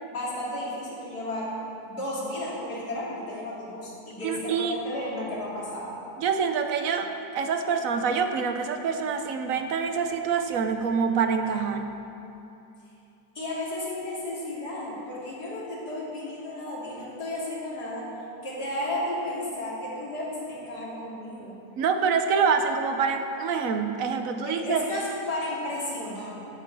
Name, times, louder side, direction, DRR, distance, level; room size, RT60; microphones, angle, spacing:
voice 1, 0.1-1.5 1.8-6.0 13.3-18.1 18.4-21.5 24.5-26.4, left 1 dB, 80° left, -7 dB, 3.2 m, -33 dB
voice 2, 4.2-4.8 6.2-11.9 21.8-24.9, right 6 dB, 65° right, 6 dB, 1.1 m, -26 dB
13.5 x 8.3 x 4.7 m, 2.8 s
omnidirectional pair, 1.7 m